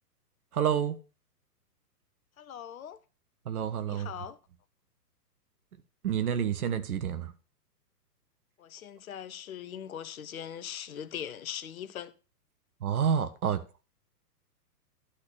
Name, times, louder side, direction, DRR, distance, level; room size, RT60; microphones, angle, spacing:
voice 1, 0.5-1.0 3.4-4.1 6.0-7.3 12.8-13.6, right 8 dB, 60° right, 1.4 m, -29 dB
voice 2, 2.4-3.0 3.9-4.4 8.6-12.1, left 9 dB, 60° left, 1.0 m, -41 dB
12.0 x 4.2 x 6.9 m
hypercardioid pair, 125°, 48 cm